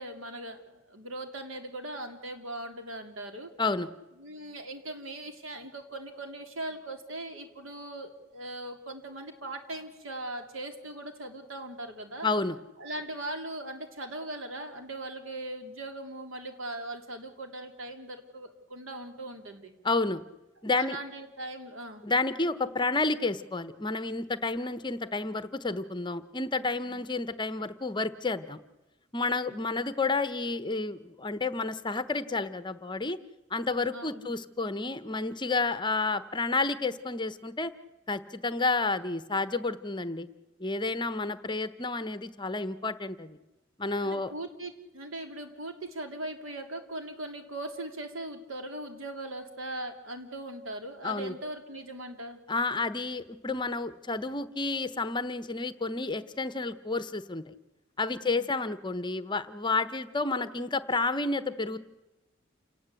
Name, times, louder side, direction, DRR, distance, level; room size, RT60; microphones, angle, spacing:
voice 1, 0.0-3.5 4.2-12.3 12.8-19.7 20.7-22.0 26.8-27.0 29.5-29.7 33.9-34.3 41.2-41.4 44.0-52.4 58.2-58.5, right 1 dB, 85° right, 5 dB, 3.3 m, -40 dB
voice 2, 3.6-3.9 12.2-12.6 19.8-20.2 20.6-21.0 22.0-28.6 29.1-33.2 33.5-37.7 38.1-40.3 40.6-43.4 43.8-44.3 51.0-51.3 52.5-57.5 58.0-61.8, left 3 dB, 25° left, 13 dB, 1.0 m, -30 dB
28.5 x 18.0 x 8.3 m, 1.0 s
head